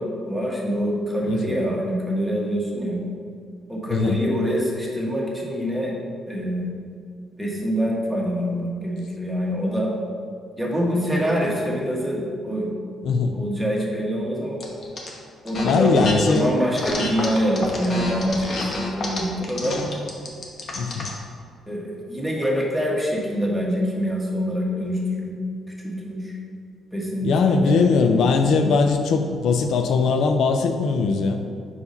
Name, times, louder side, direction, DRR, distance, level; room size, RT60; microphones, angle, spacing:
voice 1, 0.0-3.0 3.7-5.9 6.3-6.7 7.4-9.9 10.6-12.7 13.3-14.6 15.4-19.8 21.7-25.3 25.8-26.3 26.9-28.3, equal, 5° right, -3 dB, 1.4 m, -25 dB
voice 2, 13.0-13.4 15.6-16.5 20.8-21.1 27.2-31.4, left 4 dB, 75° left, 6 dB, 0.4 m, -20 dB
sound 1, 14.6-15.1 15.5-16.4 16.7-21.2, left 2 dB, 50° left, 1.0 m, -29 dB
4.8 x 4.1 x 5.3 m, 2.2 s
cardioid pair, 90°, 0 cm